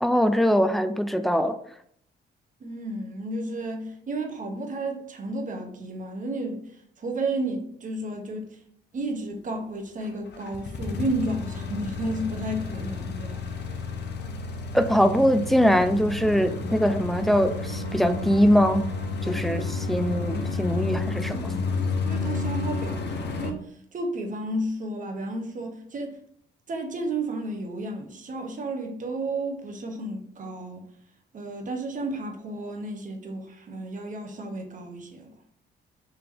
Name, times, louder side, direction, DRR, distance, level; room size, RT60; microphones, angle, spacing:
voice 1, 0.0-1.6 14.7-18.9 19.2-21.6, equal, ahead, 0.3 m, -22 dB
voice 2, 2.6-6.6 7.0-8.5 8.9-13.6 22.0-23.6 23.9-26.2 26.7-30.8 31.3-35.3, right 2 dB, 40° right, 0.9 m, -32 dB
sound 1, 10.0-23.5, left 3 dB, 60° left, 0.6 m, -31 dB
3.5 x 2.8 x 3.5 m
cardioid pair, 90°, 20 cm